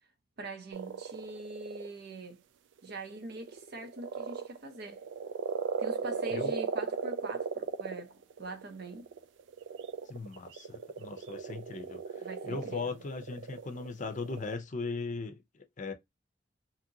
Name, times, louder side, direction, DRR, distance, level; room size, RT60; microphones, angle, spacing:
voice 1, 0.4-2.4 2.8-5.0 5.8-9.1 12.2-13.0, right 2 dB, 60° right, 0.8 m, -43 dB
sound 1, 0.7-1.9 2.8-14.5, right 6 dB, 75° right, 0.4 m, -37 dB
voice 2, 10.1-15.9, left 4 dB, 45° left, 0.6 m, -39 dB
2.8 x 2.8 x 2.6 m
head